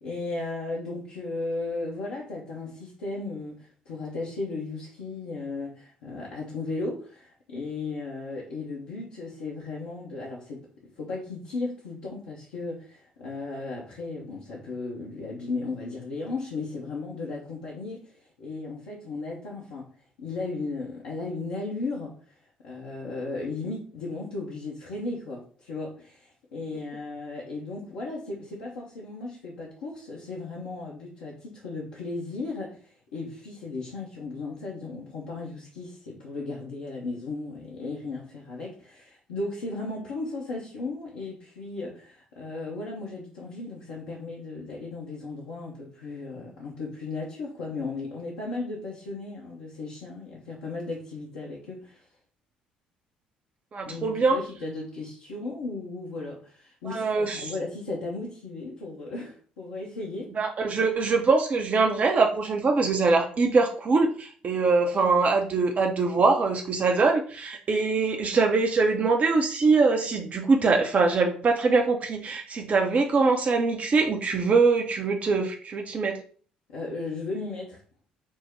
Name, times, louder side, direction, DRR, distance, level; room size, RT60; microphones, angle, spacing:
voice 1, 0.0-10.6 11.0-19.9 20.2-22.1 22.6-52.0 53.8-60.3 76.7-77.8, left 3 dB, 70° left, -5 dB, 0.9 m, -35 dB
voice 2, 53.7-54.4 56.9-57.5 60.4-76.2, right 4 dB, 35° right, 3 dB, 0.6 m, -23 dB
4.5 x 2.1 x 4.4 m, 0.43 s
figure-of-eight pair, 50°, 4 cm